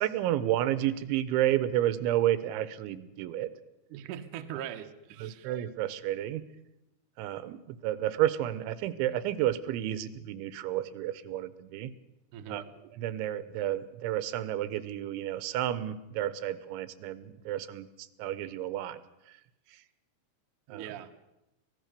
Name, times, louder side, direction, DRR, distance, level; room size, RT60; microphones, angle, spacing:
voice 1, 0.0-3.5 5.2-6.4 7.2-11.9 12.5-17.9 18.2-19.0 20.7-20.9, right 13 dB, 85° right, 15 dB, 3.3 m, -31 dB
voice 2, 3.9-5.5 12.3-12.7 20.7-21.1, right 10 dB, 70° right, 6 dB, 2.0 m, -41 dB
25.0 x 18.0 x 6.8 m, 0.90 s
omnidirectional pair, 5.3 m